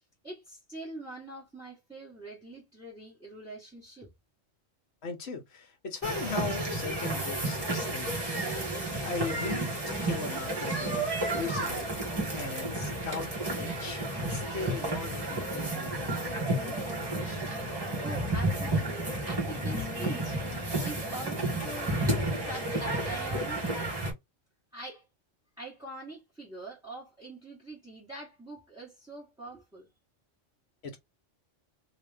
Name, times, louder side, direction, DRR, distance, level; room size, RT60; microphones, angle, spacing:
voice 1, 0.2-4.1 17.9-20.4 20.8-22.1 22.4-23.6 24.7-25.0 25.6-29.9, right 2 dB, 5° right, 1.3 m, -44 dB
voice 2, 5.0-8.5 9.0-11.9 12.3-16.9 17.2-17.4 30.8-31.0, left 4 dB, 60° left, 1.2 m, -39 dB
field recording, 6.0-24.1, right 1 dB, 20° right, 1.2 m, -32 dB
3.0 x 2.9 x 3.4 m
omnidirectional pair, 1.3 m